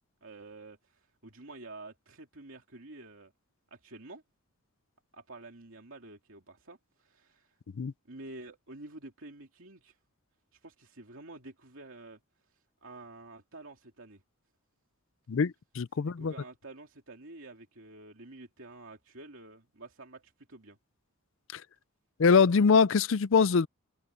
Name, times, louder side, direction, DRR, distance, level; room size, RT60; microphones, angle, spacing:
voice 1, 0.2-3.3 3.7-4.2 5.1-7.6 8.1-10.0 10.5-12.2 12.5-14.2 16.0-20.8, right 2 dB, 65° right, 2.8 m, -49 dB
voice 2, 15.3-16.3 21.5-21.6 22.2-23.7, left 5 dB, 60° left, 0.4 m, -23 dB
head